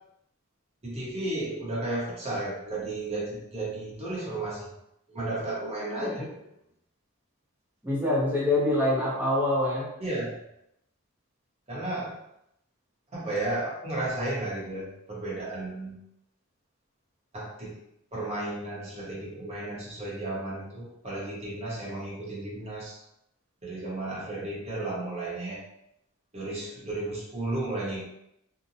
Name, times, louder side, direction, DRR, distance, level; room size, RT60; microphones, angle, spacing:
voice 1, 0.8-4.7 5.1-6.3 10.0-10.4 11.7-12.2 13.1-16.0 17.3-17.8 18.1-23.0 23.6-25.6 26.3-28.0, right 2 dB, 30° right, -6 dB, 0.8 m, -33 dB
voice 2, 7.8-9.9, left 1 dB, 10° right, -5 dB, 0.5 m, -25 dB
2.8 x 2.1 x 2.6 m, 0.80 s
head